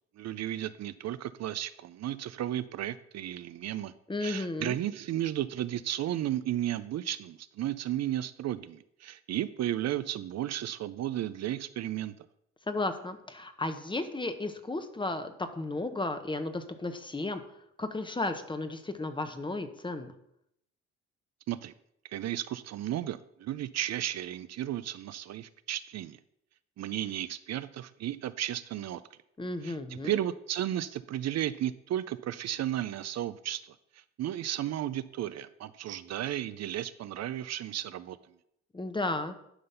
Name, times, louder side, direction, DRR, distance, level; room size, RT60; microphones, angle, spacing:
voice 1, 0.2-3.9 4.2-12.1 21.5-21.7 22.1-26.2 26.8-29.0 29.6-38.2, right 12 dB, 60° right, 13 dB, 0.5 m, -34 dB
voice 2, 4.1-4.8 12.7-17.4 17.8-20.1 29.4-30.2 38.7-39.3, left 2 dB, 15° left, 8 dB, 0.9 m, -34 dB
11.0 x 3.9 x 5.6 m, 0.77 s
cardioid pair, 90°, 30 cm